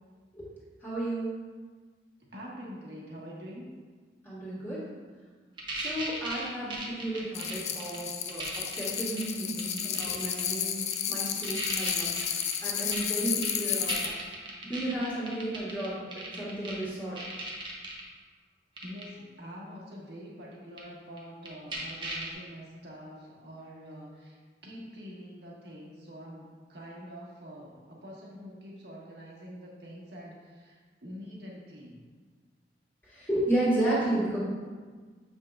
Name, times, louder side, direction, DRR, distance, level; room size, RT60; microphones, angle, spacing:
voice 1, 0.8-1.3 4.2-4.8 5.7-10.8 11.1-12.1 12.6-14.2 14.6-17.2 33.0-34.4, right 1 dB, 10° left, -10 dB, 1.7 m, -32 dB
voice 2, 2.2-3.7 18.8-32.0, equal, 70° right, -4 dB, 1.5 m, -45 dB
sound 1, 5.6-8.0 8.3-9.2 9.6-10.4 10.9-11.0 11.4-16.8 17.2-18.0 18.8-19.0 20.8-20.9 21.2-21.3 21.5-22.3, right 2 dB, 25° right, 0.9 m, -36 dB
sound 2, 7.3-14.1, left 8 dB, 40° left, 0.3 m, -32 dB
7.6 x 5.6 x 2.4 m, 1.5 s
head